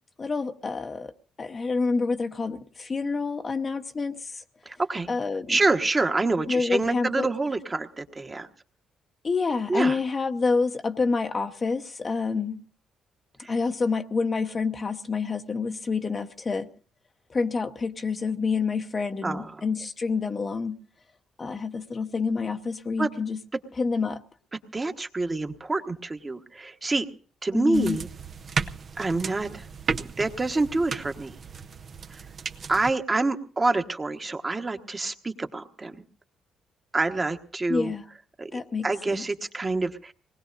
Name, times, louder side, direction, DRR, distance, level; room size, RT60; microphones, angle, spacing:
voice 1, 0.2-1.1 1.4-4.4 5.1-5.6 6.5-7.3 9.2-12.7 13.5-16.7 17.3-20.8 21.4-23.4 23.8-24.2 27.5-28.1 37.7-38.1 38.5-39.2, left 4 dB, 35° left, 0.9 m, -28 dB
voice 2, 4.6-5.1 5.5-8.5 9.7-10.0 13.4-13.5 19.2-19.5 23.0-23.1 24.7-27.1 27.4-28.1 29.0-29.6 30.0-31.3 32.7-35.9 36.9-37.9 38.4-40.1, right 3 dB, 25° right, 1.3 m, -27 dB
sound 1, 27.7-32.9, right 5 dB, 50° right, 0.7 m, -34 dB
24.5 x 19.5 x 2.6 m
cardioid pair, 90°, 0 cm